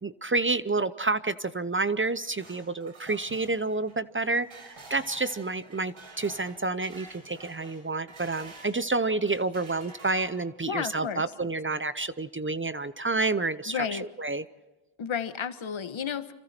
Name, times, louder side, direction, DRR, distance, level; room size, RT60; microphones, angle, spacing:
voice 1, 0.0-14.4, right 3 dB, 25° right, 14 dB, 0.7 m, -29 dB
sound 1, 2.0-8.8 9.2-10.6, right 3 dB, 70° right, 5.9 m, -49 dB
voice 2, 10.7-11.2 13.7-14.1 15.0-16.3, left 7 dB, 65° left, 10 dB, 1.6 m, -32 dB
28.5 x 27.0 x 4.4 m, 1.1 s
wide cardioid pair, 120°, 50 cm